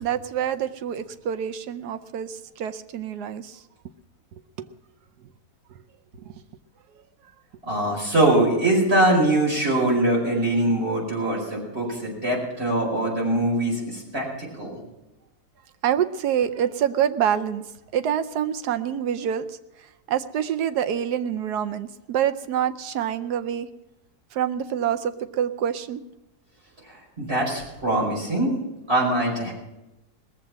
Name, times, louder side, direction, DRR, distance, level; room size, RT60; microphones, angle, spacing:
voice 1, 0.0-3.5 4.6-4.7 15.8-17.6 17.9-19.5 20.1-23.7 24.3-26.0, right 9 dB, 80° right, 10 dB, 1.2 m, -26 dB
voice 2, 7.6-14.8 27.2-28.5 28.9-29.5, right 1 dB, 35° right, -4 dB, 5.4 m, -22 dB
19.5 x 7.6 x 7.4 m, 0.97 s
omnidirectional pair, 1.7 m